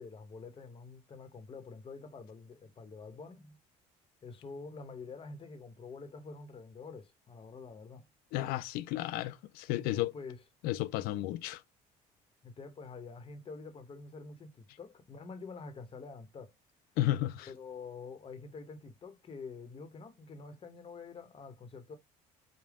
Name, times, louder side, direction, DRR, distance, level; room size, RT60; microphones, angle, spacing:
voice 1, 0.0-3.6 4.2-8.1 9.7-10.4 12.4-16.5 17.4-22.0, left 4 dB, 35° left, 1.1 m, -47 dB
voice 2, 8.3-10.1 10.6-11.6 17.0-17.5, left 14 dB, 75° left, 0.4 m, -33 dB
3.5 x 2.3 x 3.5 m
supercardioid pair, 85°, 16 cm